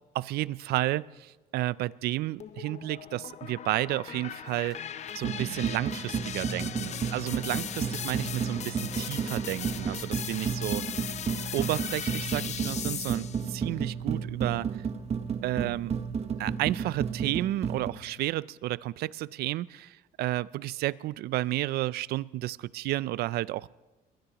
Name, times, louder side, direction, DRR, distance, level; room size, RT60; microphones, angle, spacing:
voice 1, 0.1-4.8 5.1-10.8 11.5-14.7 15.4-16.0 16.4-23.7, right 16 dB, 70° right, 21 dB, 0.4 m, -32 dB
sound 1, 2.4-13.5, left 9 dB, 40° left, 0.6 m, -38 dB
sound 2, 4.4-10.8, equal, 5° right, 3.3 m, -52 dB
sound 3, 5.2-17.9, right 6 dB, 40° right, 1.1 m, -32 dB
22.5 x 20.5 x 3.0 m, 1.1 s
cardioid pair, 110°, 17 cm